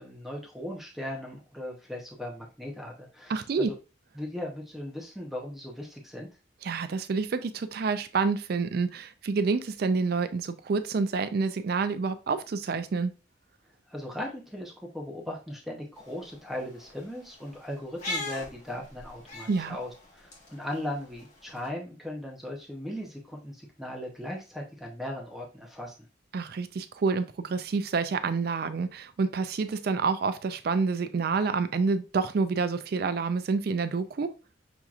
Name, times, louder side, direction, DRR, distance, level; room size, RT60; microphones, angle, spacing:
voice 1, 0.0-3.7 4.1-6.3 13.9-25.9, left 1 dB, ahead, 0.7 m, -38 dB
voice 2, 3.3-3.7 6.6-13.1 19.5-19.8 26.3-34.3, right 4 dB, 55° right, 0.4 m, -28 dB
sound 1, 16.0-21.7, left 2 dB, 40° left, 1.4 m, -41 dB
6.0 x 2.8 x 2.4 m
head